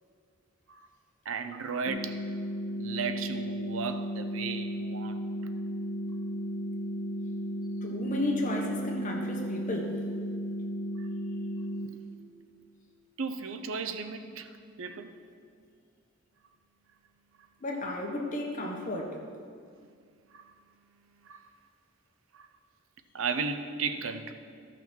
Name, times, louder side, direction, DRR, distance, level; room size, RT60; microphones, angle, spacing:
voice 1, 1.2-2.2 2.8-5.2 11.0-11.1 13.2-15.1 20.3-20.5 21.1-21.4 22.3-22.5 23.1-24.3, right 5 dB, 80° right, 8 dB, 0.6 m, -35 dB
sound 1, 1.9-11.9, equal, 80° left, 0.8 m, -34 dB
voice 2, 7.8-10.0 17.6-19.2, left 1 dB, 40° left, 0 dB, 1.3 m, -33 dB
13.5 x 6.0 x 4.5 m, 2.2 s
head